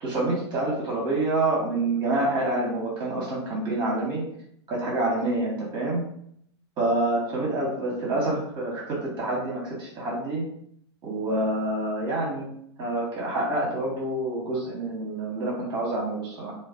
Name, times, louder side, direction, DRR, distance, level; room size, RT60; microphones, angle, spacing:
voice 1, 0.0-4.2 4.7-6.0 6.8-10.4 11.0-12.5 12.8-16.5, right 2 dB, 30° right, -4 dB, 0.8 m, -27 dB
2.4 x 2.2 x 2.4 m, 0.69 s
hypercardioid pair, 100°, 15 cm